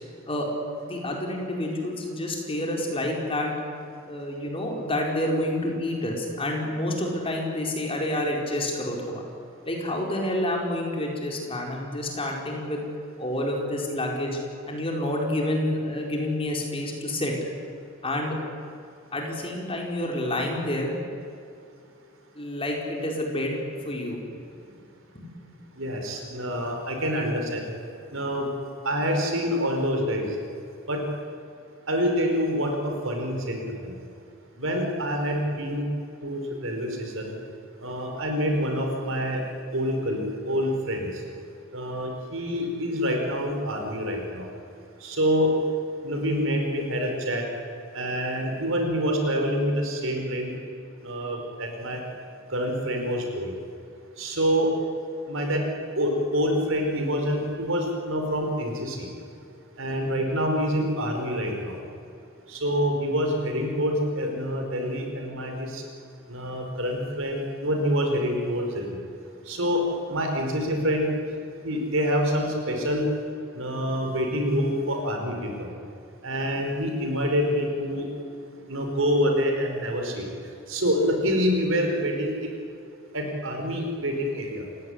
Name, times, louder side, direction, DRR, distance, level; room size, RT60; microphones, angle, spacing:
voice 1, 0.8-3.5 4.1-9.2 9.6-12.8 13.2-14.4 14.7-17.3 18.0-18.4 19.1-21.0 22.3-23.6 23.8-24.2 25.1-25.3, left 1 dB, 25° left, 0 dB, 4.9 m, -28 dB
voice 2, 25.8-27.6 28.1-28.5 28.8-30.3 30.9-31.0 31.9-33.9 34.6-35.8 36.2-37.3 37.8-39.4 39.7-41.1 41.7-44.5 45.0-45.5 46.0-47.4 47.9-50.5 51.0-52.0 52.5-53.5 54.2-54.7 55.3-55.6 56.0-59.1 59.8-61.8 62.5-65.8 66.3-69.0 69.5-69.8 70.1-71.1 71.6-73.1 73.5-75.7 76.2-78.1 78.7-80.3 80.7-82.3 83.1-84.6, equal, 65° right, 3 dB, 5.2 m, -26 dB
28.0 x 17.0 x 10.0 m, 2.5 s
head